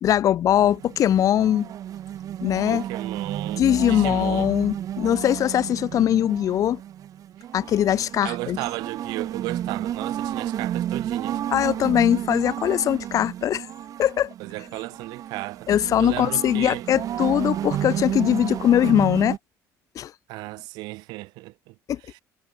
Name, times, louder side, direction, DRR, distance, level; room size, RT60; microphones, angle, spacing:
voice 1, 0.0-1.7 2.4-2.8 3.6-6.8 7.5-8.6 11.5-13.7 14.0-14.3 15.7-19.4 19.9-20.1 21.9-22.0, left 11 dB, 55° left, 1.1 m, -21 dB
sound 1, 0.6-19.4, right 11 dB, 55° right, 1.6 m, -32 dB
voice 2, 2.7-4.5 8.2-11.4 14.4-16.8 20.3-21.7 22.0-22.2, right 22 dB, 85° right, 4.3 m, -35 dB
cardioid pair, 100°, 7 cm